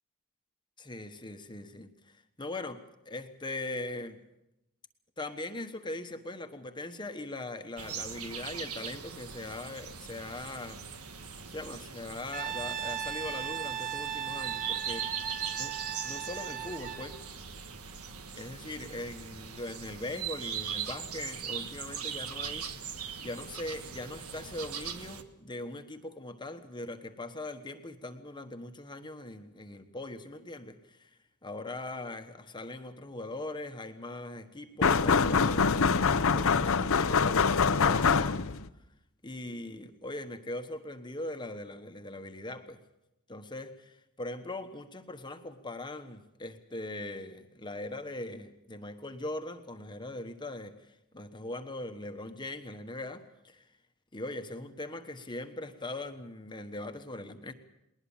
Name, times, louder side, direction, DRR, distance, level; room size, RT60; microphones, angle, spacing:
voice 1, 0.8-4.2 5.2-11.2 11.5-15.3 15.6-15.7 16.0-17.2 18.3-22.8 23.2-31.1 31.4-35.8 36.1-38.6 39.2-42.8 43.3-53.7 54.1-57.5, left 2 dB, 20° left, 7 dB, 1.2 m, -41 dB
sound 1, 7.8-25.2, right 7 dB, 80° right, 1.5 m, -40 dB
Brass instrument, 12.3-17.2, right 9 dB, 35° right, 1.5 m, -37 dB
sound 2, 34.8-38.7, left 5 dB, 65° left, 0.8 m, -24 dB
20.0 x 20.0 x 7.3 m, 0.88 s
head